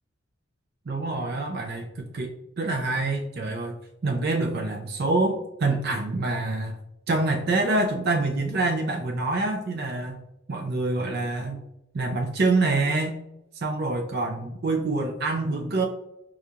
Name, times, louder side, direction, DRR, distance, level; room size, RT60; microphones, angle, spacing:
voice 1, 0.9-2.3 2.6-3.7 4.0-6.8 7.1-10.2 10.5-11.6 11.9-13.2 13.6-15.8, right 2 dB, 55° right, 2 dB, 0.5 m, -26 dB
4.7 x 2.4 x 2.7 m, 0.85 s
head